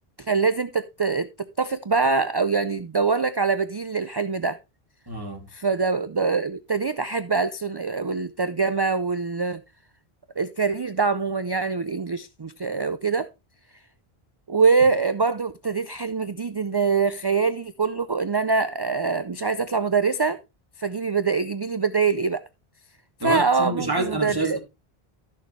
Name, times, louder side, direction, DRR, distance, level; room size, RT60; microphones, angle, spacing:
voice 1, 0.2-4.6 5.5-9.6 10.4-13.3 14.5-20.4 20.8-22.4 23.2-24.6, right 4 dB, 35° right, 0.4 m, -24 dB
voice 2, 5.1-5.5 23.2-24.6, right 2 dB, 20° right, 2.6 m, -27 dB
14.0 x 6.6 x 3.2 m
omnidirectional pair, 1.0 m